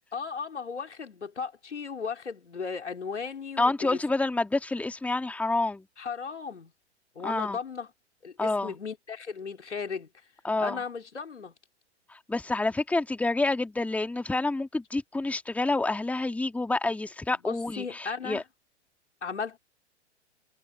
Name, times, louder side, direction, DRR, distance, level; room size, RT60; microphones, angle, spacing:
voice 1, 0.1-4.0 6.0-6.7 7.2-7.9 8.2-10.1 10.6-11.5 17.4-18.4 19.2-19.6, left 5 dB, 80° left, 4.2 m, -36 dB
voice 2, 3.6-5.8 7.2-7.6 8.4-8.7 10.4-10.8 12.1-18.4, left 2 dB, 5° left, 2.1 m, -28 dB
figure-of-eight pair, 115°, 35 cm